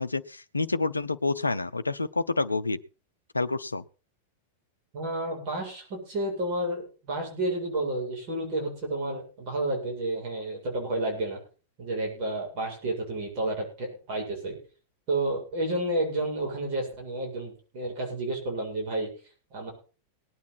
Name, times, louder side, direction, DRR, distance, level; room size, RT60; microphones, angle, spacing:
voice 1, 0.0-2.8 3.3-3.8, left 3 dB, 80° left, 11 dB, 0.6 m, -28 dB
voice 2, 4.9-11.4 11.8-14.6 15.1-19.1 19.5-19.7, right 1 dB, 40° right, 0 dB, 7.7 m, -31 dB
19.0 x 9.4 x 4.3 m, 0.36 s
figure-of-eight pair, 90°, 0 cm